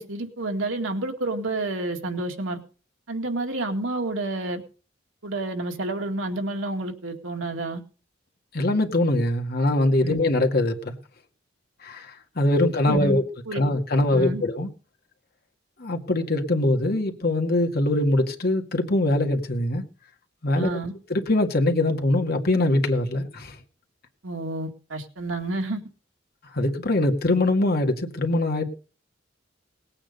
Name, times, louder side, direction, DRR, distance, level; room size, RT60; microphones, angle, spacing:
voice 1, 0.0-2.6 3.1-4.6 5.2-7.8 10.0-10.2 12.9-13.2 13.5-13.6 14.1-14.4 20.5-20.9 24.2-25.8, right 2 dB, 85° right, 2.1 m, -29 dB
voice 2, 8.5-11.0 11.8-13.2 13.5-14.7 15.8-19.8 20.4-20.7 21.1-23.6 26.5-28.7, left 1 dB, 50° left, 2.0 m, -22 dB
19.0 x 8.9 x 5.3 m
head